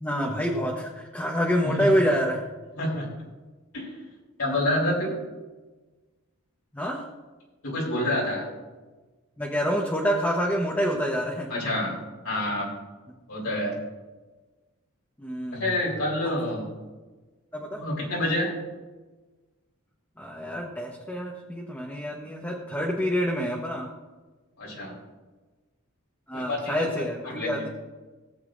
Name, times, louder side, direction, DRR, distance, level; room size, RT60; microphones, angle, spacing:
voice 1, 0.0-2.4 4.5-4.6 6.7-7.0 9.4-11.5 15.2-15.8 16.2-16.4 17.5-17.9 20.2-23.9 26.3-27.7, equal, 10° left, -2 dB, 1.1 m, -27 dB
voice 2, 2.8-3.1 3.7-3.9 4.4-5.1 7.6-8.5 11.5-12.0 12.2-12.7 13.3-13.8 15.5-16.7 17.8-18.5 24.6-25.0 26.3-26.8 27.3-27.7, left 1 dB, 80° left, -4 dB, 3.7 m, -27 dB
18.5 x 8.1 x 2.6 m, 1.2 s
head